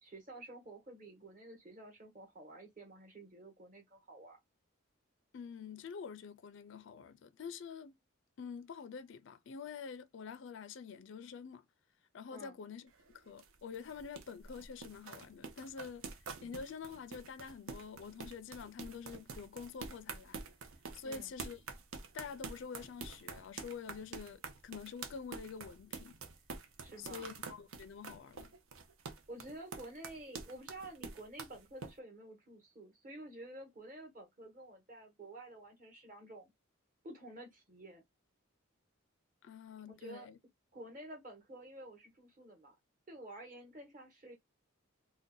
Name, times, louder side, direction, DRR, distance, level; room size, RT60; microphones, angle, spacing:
voice 1, 0.0-4.4 12.3-12.6 21.0-21.3 26.8-27.3 29.3-36.5 37.0-38.0 40.0-40.3 40.7-42.7 43.1-44.4, right 1 dB, 40° right, 1.2 m, -51 dB
voice 2, 5.3-8.0 8.4-11.6 12.1-12.9 13.1-16.1 16.4-20.4 20.9-21.6 22.1-26.2 27.0-28.5 39.4-40.4, left 6 dB, 60° left, 0.4 m, -47 dB
sound 1, 12.9-31.9, right 4 dB, 85° right, 0.6 m, -47 dB
2.6 x 2.1 x 3.7 m
head